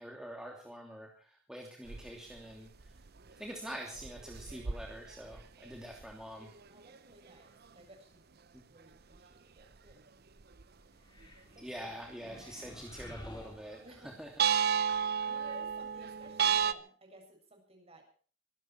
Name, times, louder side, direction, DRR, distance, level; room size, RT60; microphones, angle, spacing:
voice 1, 0.0-2.7 3.4-6.5 8.5-8.6 11.6-14.3 14.9-15.3, equal, 5° right, 0 dB, 2.8 m, -45 dB
sound 1, 1.9-2.1 2.4-2.5 2.8-3.3 3.9-6.1 6.4-6.6 6.9-7.0 9.2-9.3 9.9-10.0 10.4-10.6 14.4-16.7, right 8 dB, 55° right, 0.8 m, -32 dB
voice 2, 6.7-8.2 8.7-10.1 11.5-12.0 13.8-14.2 15.3-18.0, equal, 35° right, 2 dB, 7.2 m, -56 dB
sound 2, 11.0-14.3, left 1 dB, 25° left, 3.4 m, -51 dB
24.5 x 12.5 x 4.6 m, 0.43 s
head